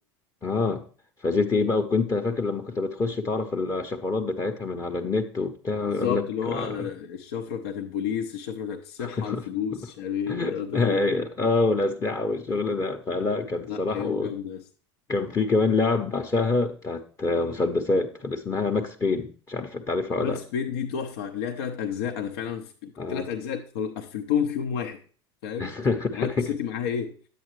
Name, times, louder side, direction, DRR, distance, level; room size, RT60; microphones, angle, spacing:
voice 1, 0.4-0.8 1.2-6.9 9.0-9.4 10.3-14.3 15.1-20.4 23.0-23.3 25.6-26.5, left 3 dB, 25° left, 0.8 m, -26 dB
voice 2, 5.8-11.1 13.7-14.6 20.2-25.0 25.4-25.8 26.1-27.2, left 8 dB, 65° left, 0.7 m, -31 dB
10.0 x 8.0 x 3.1 m
hypercardioid pair, 80°, 14 cm